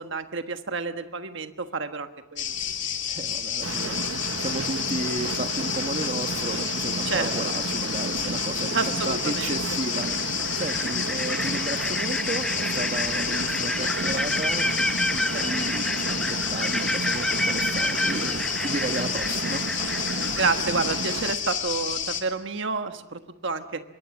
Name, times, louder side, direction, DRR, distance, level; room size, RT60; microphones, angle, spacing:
voice 1, 0.0-2.5 7.0-7.3 8.7-9.5 20.3-23.8, right 4 dB, 65° right, 7 dB, 1.3 m, -29 dB
sound 1, 2.4-22.2, left 9 dB, 60° left, 3.1 m, -30 dB
voice 2, 3.1-4.0 4.4-19.6, right 2 dB, 35° right, 7 dB, 1.4 m, -34 dB
sound 2, 3.6-21.4, right 4 dB, 85° right, 1.0 m, -33 dB
sound 3, 7.5-8.0 9.5-9.6 10.0-20.5, left 1 dB, 5° left, 0.8 m, -30 dB
26.0 x 23.0 x 7.2 m, 0.98 s
head